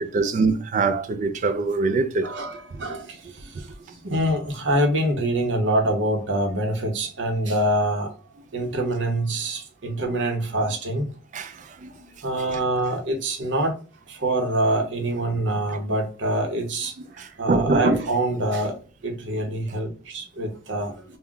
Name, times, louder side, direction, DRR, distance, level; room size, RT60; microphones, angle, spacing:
voice 1, 0.0-2.3 11.3-11.9 17.2-18.1, right 3 dB, 40° right, 0.3 m, -23 dB
voice 2, 2.2-8.1 8.5-11.1 12.2-13.8 14.1-21.0, right 1 dB, 75° right, 0.7 m, -25 dB
2.3 x 2.1 x 3.6 m
head